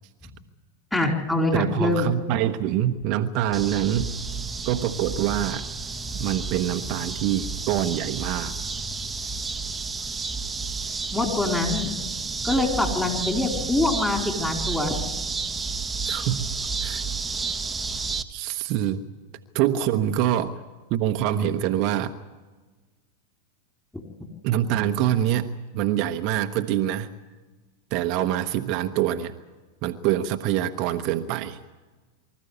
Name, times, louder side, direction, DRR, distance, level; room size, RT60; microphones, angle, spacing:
voice 1, 0.9-2.1 11.1-12.0 12.4-15.0, left 2 dB, 10° left, 2 dB, 4.3 m, -24 dB
voice 2, 1.5-4.1 4.6-5.7 6.2-8.5 16.0-16.5 16.8-17.0 18.3-19.0 19.5-20.6 20.9-22.1 24.4-27.1 27.9-29.3 29.8-31.6, right 11 dB, 50° right, 6 dB, 1.0 m, -25 dB
sound 1, 3.5-18.2, right 4 dB, 15° right, 1.2 m, -31 dB
24.5 x 14.0 x 9.7 m, 1.3 s
hypercardioid pair, 100°, 0 cm